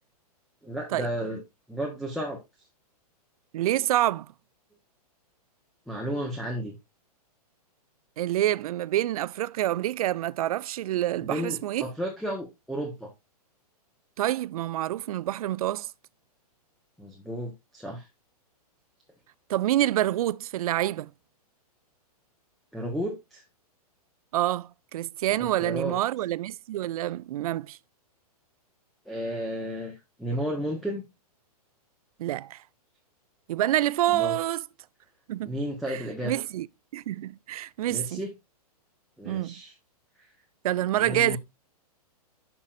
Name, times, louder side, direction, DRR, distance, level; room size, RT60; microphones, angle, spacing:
voice 1, 0.6-1.4 1.7-2.4 5.9-6.8 11.2-13.1 17.0-18.1 22.7-23.4 25.6-26.0 29.0-29.9 30.2-31.0 34.1-34.4 35.4-36.3 37.9-38.3 39.2-39.7 40.2-40.3 40.9-41.4, equal, ahead, 1.3 m, -33 dB
voice 2, 3.5-4.3 8.2-11.9 14.2-15.9 19.5-21.1 24.3-27.8 32.2-32.6 33.5-34.6 35.3-35.6 35.9-36.7 36.9-38.2 39.2-39.5 40.6-41.4, right 13 dB, 65° right, 0.4 m, -27 dB
9.8 x 6.1 x 2.5 m
hypercardioid pair, 130°, 20 cm